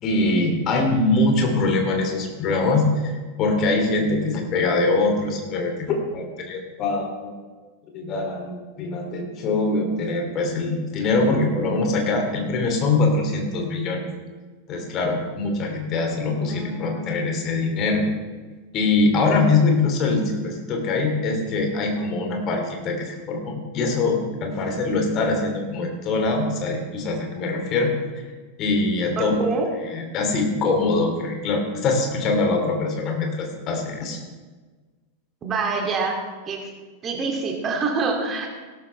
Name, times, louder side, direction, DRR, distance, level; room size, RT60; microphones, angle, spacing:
voice 1, 0.0-3.1 3.4-7.3 7.9-14.0 14.7-18.0 18.7-27.9 28.6-29.4 29.9-34.2, left 3 dB, 35° left, 2 dB, 2.9 m, -23 dB
voice 2, 16.4-17.1 29.2-29.7 35.4-36.2 36.5-36.7 37.0-38.5, right 4 dB, 25° right, 1 dB, 2.7 m, -26 dB
17.0 x 13.0 x 3.4 m, 1.4 s
figure-of-eight pair, 90°, 0 cm